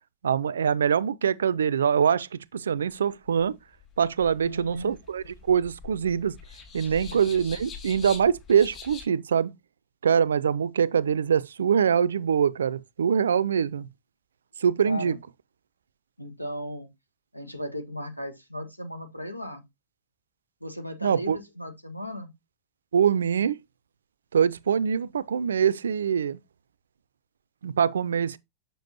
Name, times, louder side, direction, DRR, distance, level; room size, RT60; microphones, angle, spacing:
voice 1, 0.2-3.5 4.0-6.4 6.7-9.5 10.0-13.9 14.6-15.2 21.0-21.4 22.9-23.6 24.3-26.4 27.6-28.4, right 7 dB, 70° right, 0.4 m, -24 dB
sound 1, 3.7-9.1, left 6 dB, 30° left, 4.5 m, -44 dB
voice 2, 4.4-4.9 6.8-7.3 14.8-15.2 16.2-16.9 17.3-19.6 20.6-22.3, equal, 90° left, 1.6 m, -36 dB
7.5 x 6.9 x 2.8 m
figure-of-eight pair, 90°, 0 cm